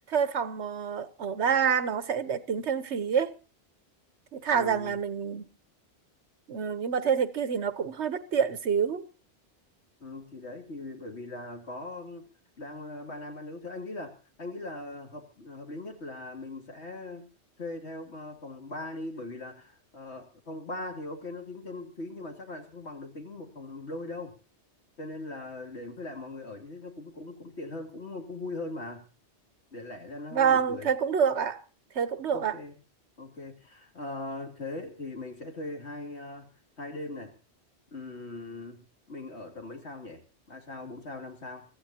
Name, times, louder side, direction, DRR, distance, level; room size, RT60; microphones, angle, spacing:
voice 1, 0.1-3.3 4.3-5.4 6.5-9.1 30.3-31.6 31.9-32.6, right 7 dB, 80° right, 1.3 m, -27 dB
voice 2, 4.5-5.0 10.0-12.2 12.6-17.3 17.6-24.4 25.0-29.1 29.7-30.9 32.3-32.7 33.2-36.5 36.8-37.4 37.9-40.2 40.5-41.7, left 2 dB, 75° left, 3.2 m, -40 dB
24.0 x 15.0 x 2.9 m
omnidirectional pair, 1.1 m